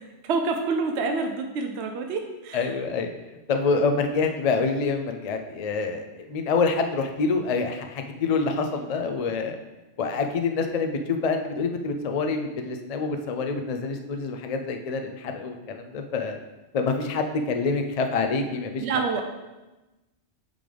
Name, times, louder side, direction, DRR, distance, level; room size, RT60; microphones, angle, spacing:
voice 1, 0.2-2.7 18.8-19.2, right 4 dB, 65° right, 4 dB, 0.8 m, -27 dB
voice 2, 2.5-3.1 3.5-9.6 10.0-16.4 16.7-18.9, left 4 dB, 60° left, 5 dB, 0.4 m, -26 dB
8.5 x 3.8 x 3.4 m, 1.1 s
omnidirectional pair, 1.3 m